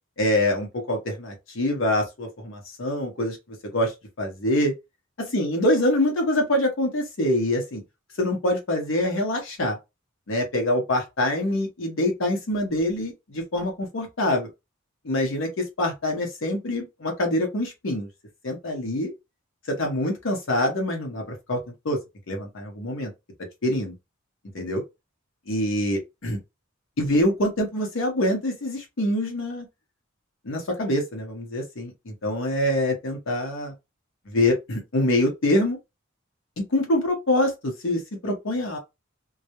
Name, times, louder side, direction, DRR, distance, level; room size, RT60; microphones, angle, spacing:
voice 1, 0.2-3.4 3.7-3.9 4.2-4.7 5.3-7.8 8.2-9.8 10.3-14.5 15.0-18.1 18.4-19.1 19.7-22.0 22.3-23.1 23.6-23.9 24.5-24.8 25.5-26.4 27.0-29.7 30.4-33.7 34.3-35.8 36.7-38.8, left 1 dB, 65° left, 0.8 m, -25 dB
2.2 x 2.0 x 2.8 m
head